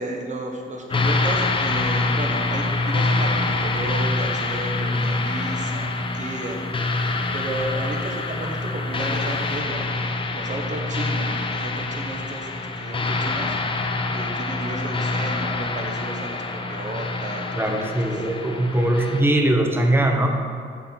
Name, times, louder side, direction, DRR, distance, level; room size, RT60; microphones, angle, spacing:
voice 1, 0.0-13.6 14.1-18.2, right 2 dB, 40° right, 1 dB, 1.0 m, -33 dB
sound 1, 0.9-19.2, left 3 dB, 25° left, 0.5 m, -25 dB
voice 2, 17.5-20.3, right 1 dB, 10° right, 3 dB, 0.8 m, -21 dB
6.5 x 4.2 x 4.4 m, 2.3 s
cardioid pair, 90°, 20 cm